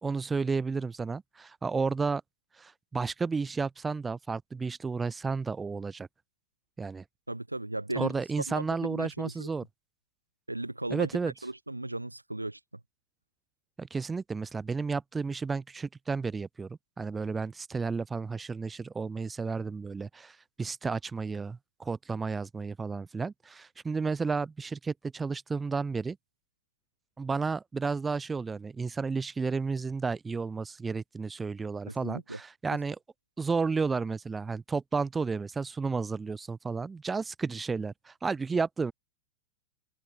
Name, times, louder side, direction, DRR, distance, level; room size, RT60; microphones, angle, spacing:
voice 1, 0.0-2.2 2.6-6.1 6.8-7.0 8.0-9.6 10.9-11.3 13.8-26.2 27.2-33.0 33.4-38.9, right 4 dB, 15° right, 3.9 m, -32 dB
voice 2, 7.3-8.1 8.5-9.5 10.5-12.6 31.9-32.4, right 2 dB, 85° right, 1.7 m, -36 dB
open air
figure-of-eight pair, 95°, 0 cm